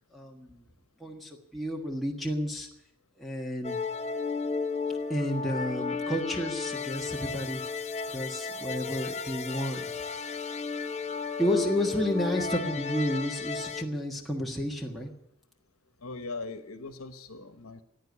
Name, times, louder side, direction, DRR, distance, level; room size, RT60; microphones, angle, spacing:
voice 1, 0.1-0.6 1.0-2.7 3.2-3.8 5.1-7.6 8.1-9.9 10.3-10.4 11.4-15.1, equal, ahead, -2 dB, 1.5 m, -31 dB
sound 1, 3.6-13.8, left 5 dB, 30° left, 0.6 m, -34 dB
voice 2, 16.0-17.8, left 3 dB, 75° left, 8 dB, 1.2 m, -40 dB
16.0 x 9.6 x 8.4 m, 0.81 s
head